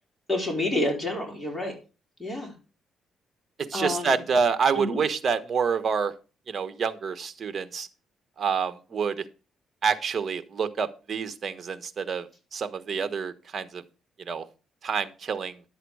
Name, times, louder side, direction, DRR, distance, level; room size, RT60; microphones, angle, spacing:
voice 1, 0.3-1.7 2.2-2.5 3.7-4.2 4.8-5.0, left 1 dB, 10° left, 0 dB, 4.3 m, -28 dB
voice 2, 3.6-6.1 6.5-7.9 8.4-9.2 9.8-13.8 14.3-14.4 14.8-15.6, right 6 dB, 45° right, 10 dB, 1.3 m, -27 dB
11.5 x 7.9 x 4.8 m, 0.33 s
cardioid pair, 90°, 0 cm